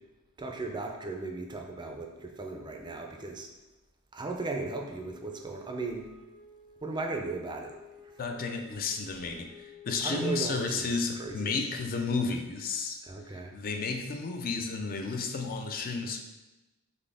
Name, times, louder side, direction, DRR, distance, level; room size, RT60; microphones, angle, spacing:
voice 1, 0.4-3.5 4.1-6.0 6.8-7.7 10.0-10.9 11.2-11.5 13.0-13.5, right 3 dB, 20° right, 2 dB, 0.4 m, -36 dB
Wind instrument woodwind instrument, 4.4-11.2, left 2 dB, 80° left, 1.1 m, -55 dB
voice 2, 8.2-13.0 13.3-16.2, left 4 dB, 40° left, 5 dB, 0.4 m, -32 dB
4.2 x 3.2 x 3.4 m, 1.1 s
head